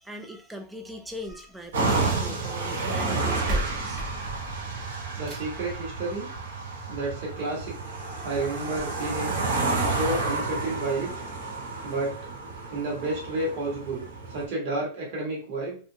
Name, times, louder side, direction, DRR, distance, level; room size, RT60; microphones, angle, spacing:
voice 1, 0.0-4.0 8.1-8.6, right 1 dB, 5° right, 3 dB, 0.3 m, -40 dB
sound 1, 1.1-2.3 3.1-3.2 3.5-5.7 7.1-7.2 7.7-7.8 8.0-8.1 8.7-8.8, right 1 dB, 25° right, 0.8 m, -35 dB
sound 2, 1.7-14.4, right 3 dB, 85° right, 0.8 m, -30 dB
voice 2, 5.2-6.3 6.9-9.4 9.9-11.1 11.8-12.1 12.7-15.8, right 2 dB, 45° right, -3 dB, 1.1 m, -31 dB
2.6 x 2.4 x 2.7 m, 0.41 s
supercardioid pair, 160°, 0 cm